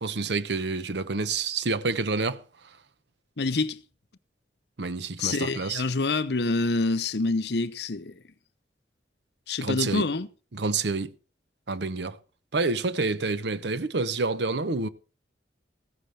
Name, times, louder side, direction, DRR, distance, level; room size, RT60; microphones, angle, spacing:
voice 1, 0.0-2.4 4.8-5.8 9.6-10.0 10.5-11.1 11.7-12.2 12.5-14.9, right 3 dB, 70° right, 0.8 m, -28 dB
voice 2, 3.4-3.8 5.2-8.2 9.5-10.3, left 3 dB, 65° left, 0.8 m, -27 dB
15.0 x 14.5 x 3.4 m
head